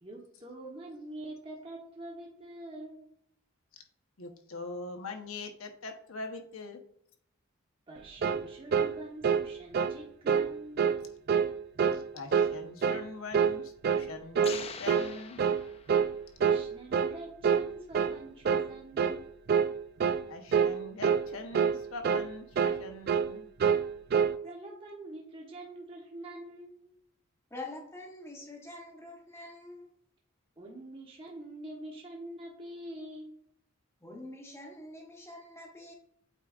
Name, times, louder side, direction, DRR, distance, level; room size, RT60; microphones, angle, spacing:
voice 1, 0.0-3.1 7.9-10.9 16.4-19.3 24.4-26.9 30.6-33.3, right 1 dB, 25° right, 1.0 m, -45 dB
voice 2, 4.2-6.8 11.9-15.4 20.3-23.5, left 3 dB, 75° left, 1.0 m, -42 dB
sound 1, 8.2-8.5 8.7-8.9 9.2-9.5 9.7-10.0 10.3-10.5 10.8-11.0 11.3-11.5 11.8-12.0 12.3-12.5 12.8-13.1 13.3-13.6 13.8-14.1 14.4-14.6 14.9-15.1 15.4-15.6 15.9-16.1 16.4-16.6 16.9-17.2 17.4-17.7 17.9-18.2 18.5-18.7 19.0-19.2 19.5-19.7 20.0-20.2 20.5-20.8 21.0-21.2 21.5-21.8 22.0-22.3 22.6-22.8 23.1-23.3 23.6-24.4, right 7 dB, 45° right, 0.3 m, -26 dB
sound 2, 14.4-16.3, left 6 dB, 30° left, 0.4 m, -44 dB
voice 3, 27.5-29.9 34.0-35.9, left 2 dB, 10° left, 1.1 m, -45 dB
8.2 x 4.9 x 2.4 m
head